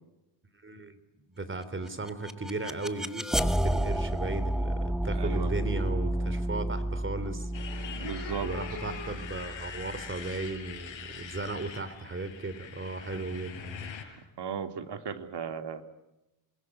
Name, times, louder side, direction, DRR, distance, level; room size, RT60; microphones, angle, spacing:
voice 1, 0.6-1.0 1.3-7.5 8.4-13.9, right 3 dB, 25° right, 12 dB, 3.5 m, -36 dB
sound 1, 1.9-10.8, right 1 dB, ahead, 1.8 m, -31 dB
voice 2, 5.1-5.5 8.0-8.5 14.4-15.8, right 7 dB, 55° right, 7 dB, 2.7 m, -36 dB
Motorcycle, 7.5-14.0, left 6 dB, 70° left, 5.9 m, -42 dB
28.0 x 21.5 x 9.7 m, 0.98 s
cardioid pair, 100°, 47 cm